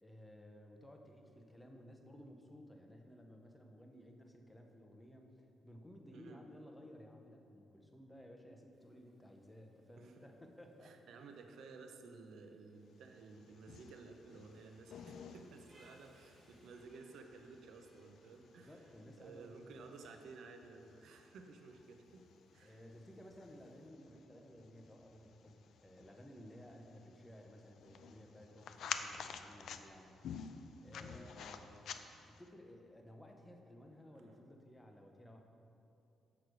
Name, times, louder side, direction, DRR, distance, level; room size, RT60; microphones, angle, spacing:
voice 1, 0.0-11.0 18.2-19.9 22.6-30.6 30.8-31.7 32.3-35.4, equal, 10° left, 3 dB, 0.6 m, -57 dB
voice 2, 6.1-6.5 10.0-10.2 10.8-18.8 19.2-22.3 22.5-22.8 27.0-27.3 31.0-31.3 34.1-34.4, right 4 dB, 65° right, 5 dB, 0.6 m, -55 dB
Rain, 8.7-23.9, right 1 dB, 30° right, 1.5 m, -72 dB
sound 1, 13.1-32.5, left 7 dB, 60° left, 0.3 m, -51 dB
6.5 x 6.0 x 4.8 m, 2.6 s
cardioid pair, 180°, 0 cm